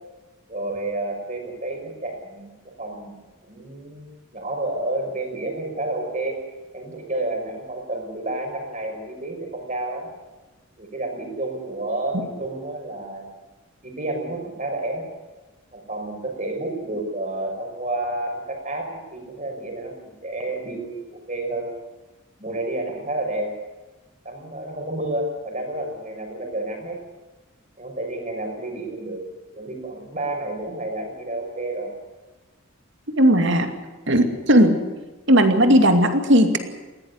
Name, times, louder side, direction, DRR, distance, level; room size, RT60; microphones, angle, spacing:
voice 1, 0.5-2.5 2.8-3.1 3.4-6.4 6.7-10.1 10.8-13.3 13.8-15.1 15.7-21.7 22.4-23.6 24.2-27.0 27.8-31.9, right 2 dB, 35° right, 3 dB, 5.9 m, -30 dB
voice 2, 33.2-33.7 34.1-34.8 35.3-36.6, equal, 55° right, 7 dB, 2.5 m, -16 dB
20.0 x 17.0 x 9.7 m, 1.2 s
head